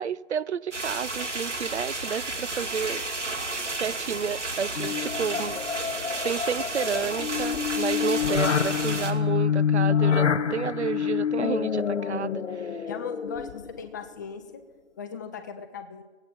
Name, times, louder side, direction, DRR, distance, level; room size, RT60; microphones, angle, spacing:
voice 1, 0.0-3.0 3.8-5.6 6.2-12.8, right 7 dB, 70° right, 0.6 m, -31 dB
sound 1, 0.7-9.1, right 2 dB, 85° right, 2.1 m, -32 dB
sound 2, 4.8-13.8, left 7 dB, 85° left, 0.8 m, -27 dB
voice 2, 12.9-14.6 15.0-16.0, left 6 dB, 15° left, 0.6 m, -38 dB
18.5 x 8.7 x 6.1 m
figure-of-eight pair, 145°, 35 cm